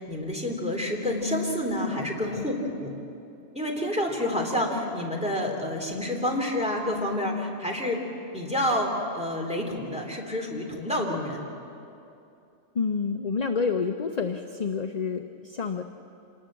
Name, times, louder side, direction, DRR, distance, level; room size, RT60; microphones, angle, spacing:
voice 1, 0.0-2.9 3.5-8.0 8.3-11.4, left 1 dB, 5° right, -1 dB, 3.4 m, -28 dB
voice 2, 12.7-15.8, left 5 dB, 40° left, 5 dB, 0.8 m, -28 dB
26.5 x 20.0 x 7.6 m, 2.7 s
omnidirectional pair, 1.2 m